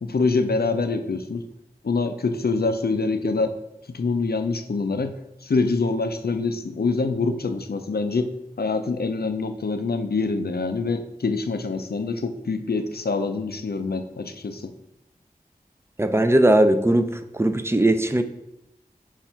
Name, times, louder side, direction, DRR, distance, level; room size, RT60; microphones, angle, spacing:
voice 1, 0.0-1.5 1.8-3.5 3.9-5.1 5.4-8.3 8.6-14.7, left 3 dB, 85° left, 8 dB, 0.5 m, -25 dB
voice 2, 16.0-17.1 17.3-18.2, right 1 dB, 15° right, 9 dB, 0.5 m, -18 dB
7.1 x 2.5 x 5.6 m, 0.89 s
wide cardioid pair, 40°, 16 cm